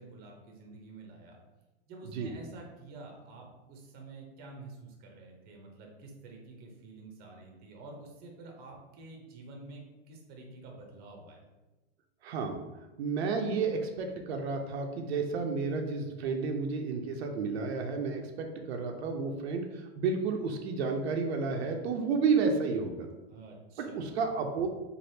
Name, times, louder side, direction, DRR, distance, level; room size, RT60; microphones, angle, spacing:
voice 1, 0.0-1.4 1.9-11.4 23.3-24.3, right 2 dB, 30° right, 1 dB, 0.7 m, -49 dB
voice 2, 12.2-12.6 13.0-23.1 23.8-24.7, right 4 dB, 85° right, 4 dB, 0.5 m, -31 dB
3.2 x 2.4 x 2.7 m, 1.1 s
supercardioid pair, 140°, 31 cm